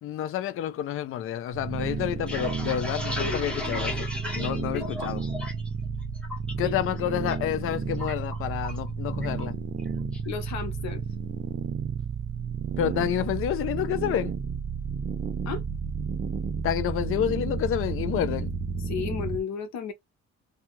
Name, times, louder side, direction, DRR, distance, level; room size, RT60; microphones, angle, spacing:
voice 1, 0.0-4.1 4.3-5.2 6.6-9.6 12.8-14.3 16.6-18.5, left 11 dB, 50° left, 0.4 m, -29 dB
sound 1, 1.5-19.4, right 5 dB, 30° right, 0.3 m, -32 dB
sound 2, 2.3-5.7 6.0-6.5 6.9-7.4 7.6-8.9 9.2-9.5 9.8-10.3, left 2 dB, 5° left, 0.8 m, -35 dB
voice 2, 3.2-3.5 4.7-4.9 6.6-6.7 10.3-11.0 15.5-15.6 18.9-19.9, left 7 dB, 65° left, 0.8 m, -33 dB
2.8 x 2.3 x 3.0 m
cardioid pair, 155°, 29 cm